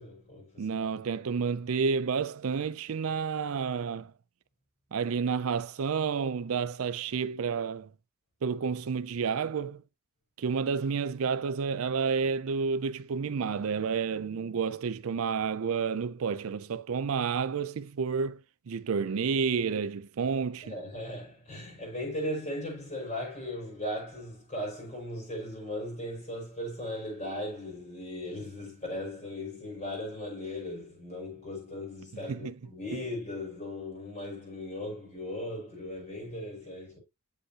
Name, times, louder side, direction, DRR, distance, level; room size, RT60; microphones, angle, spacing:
voice 1, 0.0-0.9 20.6-37.0, left 1 dB, 35° left, 5.5 m, -38 dB
voice 2, 0.6-4.1 4.9-7.9 8.4-9.8 10.4-18.4 18.7-20.7 32.3-32.5, right 5 dB, 65° right, 0.4 m, -30 dB
8.3 x 7.9 x 2.8 m
head